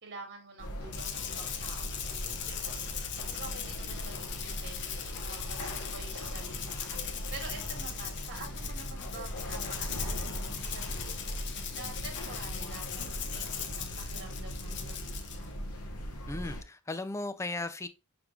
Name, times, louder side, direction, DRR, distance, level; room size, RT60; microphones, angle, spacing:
voice 1, 0.0-11.4 11.7-15.5, right 3 dB, 50° right, 1.4 m, -48 dB
sound 1, 0.6-16.6, equal, 85° left, 1.0 m, -39 dB
Rattle (instrument), 0.9-15.4, left 8 dB, 55° left, 0.6 m, -40 dB
voice 2, 16.3-17.9, left 2 dB, 15° left, 0.3 m, -36 dB
6.0 x 3.4 x 2.4 m
head